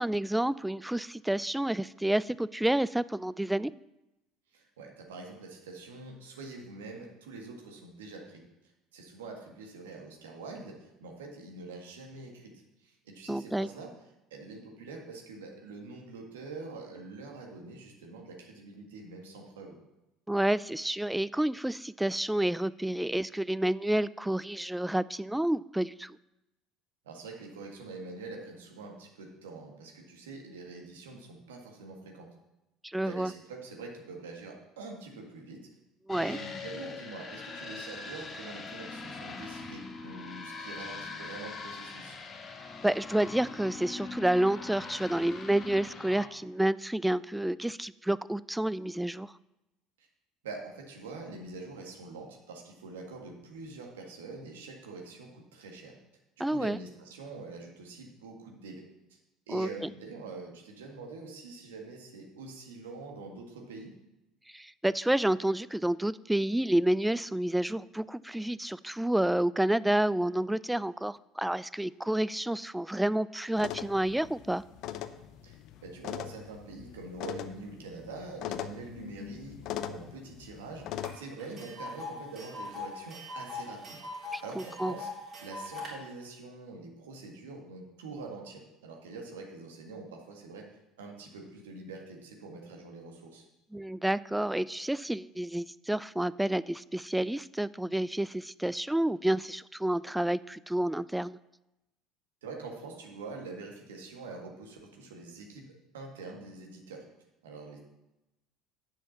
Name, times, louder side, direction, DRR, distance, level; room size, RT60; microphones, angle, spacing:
voice 1, 0.0-3.7 13.3-13.7 20.3-26.2 32.8-33.3 36.1-36.4 42.8-49.3 56.4-56.8 59.5-59.9 64.5-74.6 84.3-84.9 93.7-101.4, right 1 dB, 5° right, 19 dB, 0.3 m, -29 dB
voice 2, 4.5-8.4 8.9-13.9 14.3-19.8 27.0-32.3 33.0-35.7 36.2-42.2 50.0-50.1 50.4-55.9 56.4-59.2 59.5-63.9 75.4-84.0 84.4-85.1 85.4-90.7 91.0-93.5 102.4-107.1 107.4-107.8, right 3 dB, 80° right, 1 dB, 1.6 m, -45 dB
sound 1, 36.1-46.3, left 4 dB, 35° left, 1.3 m, -42 dB
sound 2, 73.5-81.1, left 10 dB, 60° left, 0.6 m, -41 dB
Tick, 81.0-81.1 81.4-85.9, left 3 dB, 45° right, 3.3 m, -41 dB
7.6 x 5.7 x 7.2 m, 0.94 s
hypercardioid pair, 65°, 0 cm